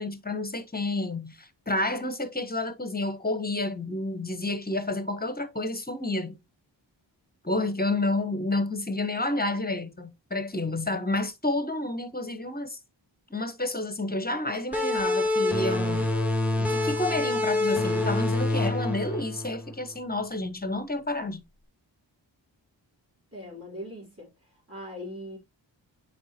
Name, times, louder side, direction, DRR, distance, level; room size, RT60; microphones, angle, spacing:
voice 1, 0.0-6.4 7.4-12.8 13.3-16.1 16.5-21.4, left 2 dB, 20° left, 1.2 m, -30 dB
sound 1, 14.7-20.0, left 2 dB, 5° right, 2.1 m, -26 dB
voice 2, 23.3-25.4, left 1 dB, 30° right, 3.7 m, -41 dB
7.0 x 5.2 x 2.9 m
cardioid pair, 45°, 46 cm